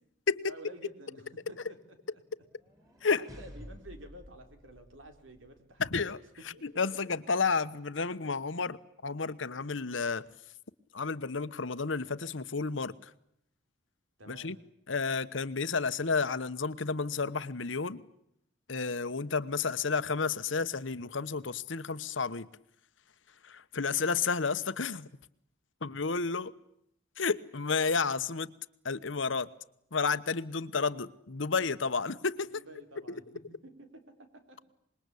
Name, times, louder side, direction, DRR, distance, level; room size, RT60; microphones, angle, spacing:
voice 1, 0.5-2.2 3.2-6.2 6.5-6.6 14.2-14.6 32.5-34.7, right 1 dB, 90° right, 3.9 m, -51 dB
sound 1, 2.4-5.6, equal, 15° right, 4.8 m, -51 dB
voice 2, 5.8-6.2 6.6-8.8 9.0-10.2 10.9-13.1 14.3-14.6 14.9-18.0 18.7-22.5 23.4-25.1 25.8-26.5 27.2-28.5 28.8-29.5 29.9-32.6, left 4 dB, 75° left, 1.1 m, -31 dB
26.0 x 21.5 x 8.4 m
head